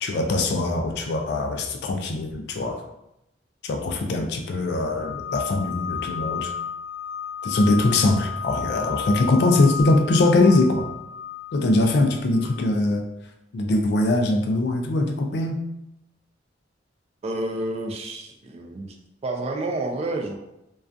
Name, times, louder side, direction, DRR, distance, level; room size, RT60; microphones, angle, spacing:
voice 1, 0.0-2.8 3.6-6.5 7.4-10.9 11.5-13.0 13.5-15.6, left 2 dB, 60° left, 4 dB, 0.3 m, -22 dB
sound 1, 4.8-12.6, left 8 dB, 75° right, 0.8 m, -33 dB
voice 2, 17.2-19.0 19.2-20.4, right 2 dB, 35° right, 3 dB, 0.3 m, -29 dB
2.3 x 2.3 x 2.5 m, 0.86 s
head